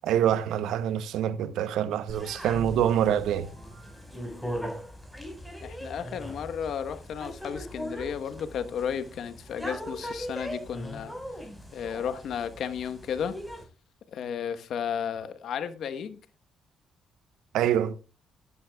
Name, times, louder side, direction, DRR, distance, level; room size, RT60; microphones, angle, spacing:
voice 1, 0.0-3.5 17.5-17.9, right 10 dB, 85° right, 0.8 m, -25 dB
sound 1, 2.1-13.6, equal, ahead, 5.0 m, -40 dB
sound 2, 2.4-5.0, equal, 20° right, 5.3 m, -45 dB
voice 2, 4.1-4.7 5.6-11.1 11.7-13.4 14.1-16.2, left 7 dB, 70° left, 1.1 m, -33 dB
17.0 x 11.0 x 2.3 m
cardioid pair, 90°, 0 cm